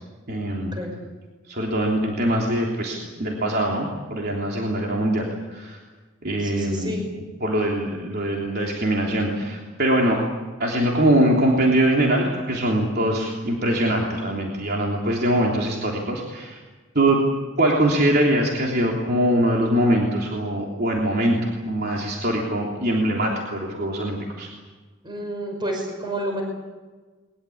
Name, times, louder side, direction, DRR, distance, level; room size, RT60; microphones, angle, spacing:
voice 1, 0.3-0.8 1.5-5.8 6.2-6.9 7.4-10.2 10.6-16.6 16.9-17.3 17.6-24.5, right 1 dB, 50° right, -1 dB, 3.4 m, -22 dB
voice 2, 6.4-7.0 25.0-26.4, right 1 dB, 25° right, 2 dB, 5.5 m, -30 dB
22.0 x 21.5 x 8.6 m, 1.3 s
head